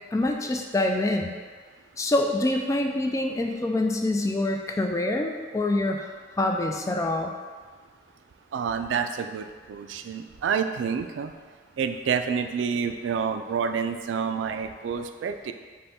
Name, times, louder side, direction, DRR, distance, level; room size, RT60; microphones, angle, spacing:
voice 1, 0.1-1.3 2.0-6.1 6.4-7.3, left 2 dB, 15° left, 3 dB, 0.3 m, -25 dB
voice 2, 8.5-11.3 11.8-15.5, right 6 dB, 80° right, 7 dB, 0.3 m, -28 dB
5.4 x 2.2 x 4.2 m, 1.5 s
head